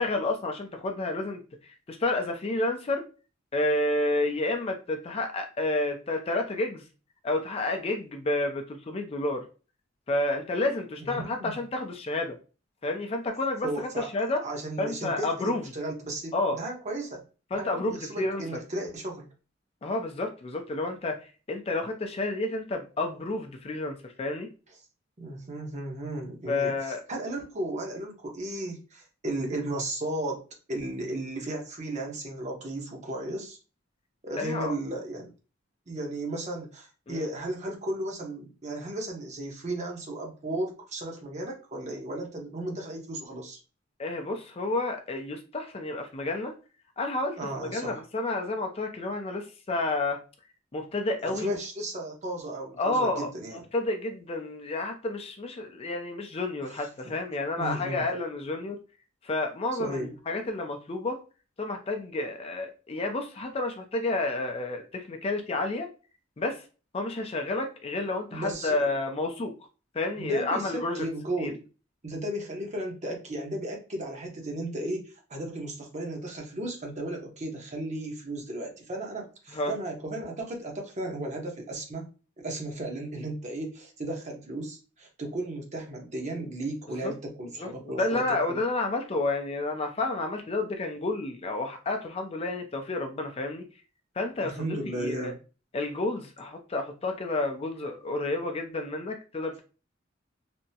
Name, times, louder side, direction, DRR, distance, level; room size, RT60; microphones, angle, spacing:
voice 1, 0.0-3.0 3.5-6.8 7.2-9.4 10.1-12.4 12.8-13.7 14.0-14.4 14.8-15.6 16.3-16.6 17.5-18.4 19.8-21.2 21.5-24.5 26.5-27.0 34.4-34.7 37.1-37.3 44.0-46.5 47.0-50.2 50.7-51.5 52.8-53.3 53.7-58.8 59.2-61.2 61.6-65.9 66.4-66.6 66.9-69.5 69.9-71.0 71.4-71.5 79.5-79.7 87.0-87.1 87.6-87.7 88.0-93.6 94.2-95.3 95.7-99.6, left 2 dB, 30° left, 4 dB, 0.4 m, -30 dB
voice 2, 11.0-11.5 13.6-14.1 14.4-17.2 17.6-19.3 25.2-30.4 30.7-33.6 34.2-35.3 35.9-43.6 47.4-48.0 51.2-53.7 57.6-58.0 59.8-60.1 68.3-68.9 70.2-71.6 72.0-82.1 82.4-88.6 94.4-95.3, right 1 dB, 40° right, 1 dB, 0.8 m, -35 dB
3.4 x 2.0 x 2.7 m, 0.33 s
head